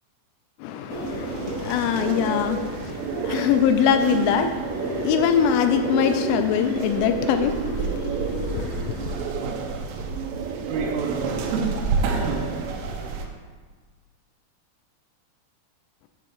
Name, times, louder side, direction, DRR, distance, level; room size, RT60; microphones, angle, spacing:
voice 1, 0.6-9.2, left 8 dB, 85° left, 8 dB, 2.7 m, -23 dB
sound 1, 0.9-13.2, right 4 dB, 80° right, 3.2 m, -28 dB
9.9 x 3.6 x 6.5 m, 1.4 s
omnidirectional pair, 5.8 m